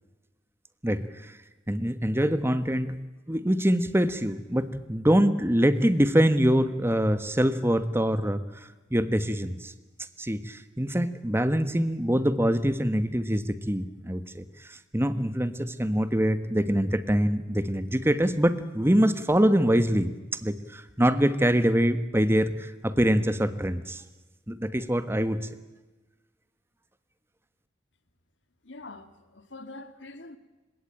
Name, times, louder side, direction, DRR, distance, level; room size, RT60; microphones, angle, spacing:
voice 1, 0.8-1.4 1.7-2.9 3.3-9.7 10.2-20.1 20.4-24.0 24.5-25.4, equal, 15° right, 1.4 m, -24 dB
voice 2, 28.6-30.4, left 2 dB, 75° left, 2.1 m, -44 dB
29.5 x 17.5 x 9.2 m
head